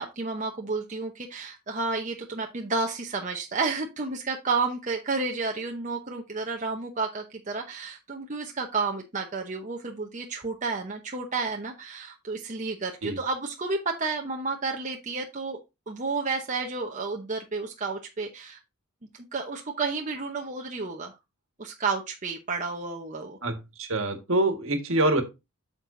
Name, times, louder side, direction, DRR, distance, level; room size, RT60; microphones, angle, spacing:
voice 1, 0.0-15.6 15.9-18.6 19.3-21.1 21.6-23.4, right 4 dB, 35° right, 2 dB, 0.9 m, -31 dB
voice 2, 23.4-25.2, right 2 dB, 65° right, 6 dB, 1.6 m, -25 dB
8.8 x 6.1 x 2.6 m, 0.24 s
head